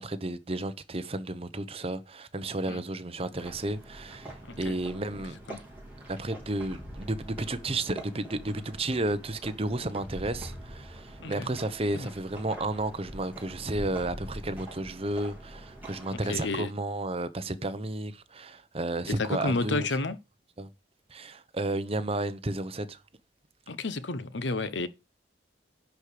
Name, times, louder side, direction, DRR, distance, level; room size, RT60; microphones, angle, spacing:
voice 1, 0.0-5.4 6.1-19.9 20.6-20.7 21.1-23.0, right 2 dB, 30° right, 0.9 m, -32 dB
sound 1, 3.3-16.6, right 1 dB, 10° right, 4.1 m, -44 dB
voice 2, 16.1-16.7 19.1-20.2 23.7-24.9, left 3 dB, 70° left, 1.0 m, -31 dB
10.5 x 5.0 x 6.7 m
head